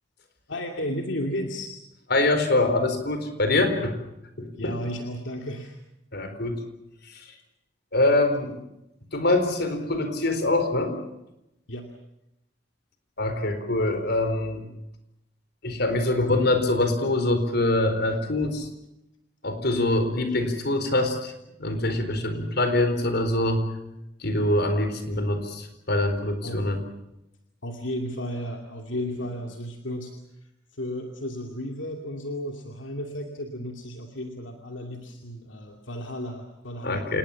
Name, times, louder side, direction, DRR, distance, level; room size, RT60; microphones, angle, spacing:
voice 1, 0.5-1.7 4.6-5.8 11.7-11.9 25.1-25.3 26.4-26.6 27.6-30.1 30.4-37.2, equal, 80° left, 3 dB, 2.6 m, -34 dB
voice 2, 2.1-4.0 4.4-4.8 6.1-6.6 7.0-7.3 7.9-8.6 9.1-11.0 13.2-14.6 15.6-18.7 19.4-21.3 21.6-23.6 24.2-26.8 36.8-37.2, left 2 dB, 60° left, 8 dB, 4.3 m, -24 dB
28.0 x 19.5 x 7.3 m, 0.88 s
head